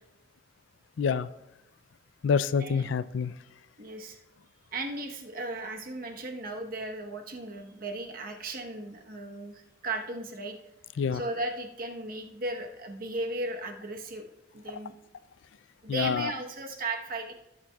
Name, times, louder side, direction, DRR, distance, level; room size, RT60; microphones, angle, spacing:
voice 1, 1.0-1.3 2.2-3.3 11.0-11.2 15.9-16.3, left 6 dB, 75° left, 16 dB, 0.4 m, -27 dB
voice 2, 3.8-4.2 4.7-10.6 11.1-14.3 14.5-14.9 15.8-17.3, right 2 dB, 50° right, 3 dB, 1.0 m, -36 dB
18.0 x 7.4 x 2.3 m, 0.94 s
head